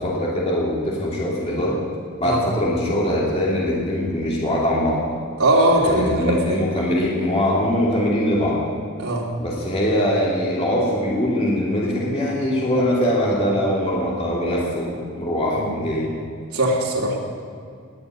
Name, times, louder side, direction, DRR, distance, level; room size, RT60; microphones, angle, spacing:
voice 1, 0.0-1.8 2.2-5.0 5.8-8.6 9.4-16.1, left 1 dB, 30° left, -5 dB, 2.7 m, -22 dB
voice 2, 5.4-6.6 9.0-9.3 15.6-15.7 16.5-17.2, right 1 dB, 90° right, -3 dB, 3.2 m, -20 dB
19.5 x 6.9 x 9.3 m, 2.3 s
head